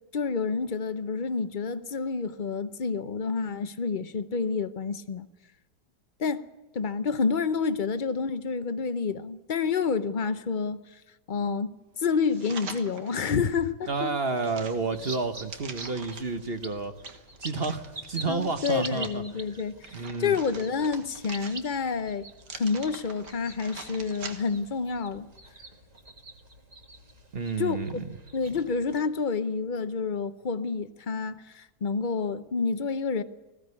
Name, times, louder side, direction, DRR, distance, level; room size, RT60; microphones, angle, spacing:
voice 1, 0.1-5.3 6.2-6.5 6.7-10.9 11.3-14.1 18.3-22.2 22.5-25.3 27.6-28.0 28.3-33.2, left 5 dB, 45° left, 0.6 m, -29 dB
sound 1, 12.3-13.4 13.9-16.4 17.0-19.1 19.6-21.9 22.4-24.7 25.1-25.2, right 6 dB, 80° right, 2.2 m, -44 dB
voice 2, 13.9-16.9 17.4-19.2 19.9-20.3 27.3-27.9, right 4 dB, 40° right, 1.1 m, -30 dB
sound 2, 14.7-29.0, right 2 dB, 25° right, 1.6 m, -46 dB
20.0 x 15.5 x 9.7 m
omnidirectional pair, 1.8 m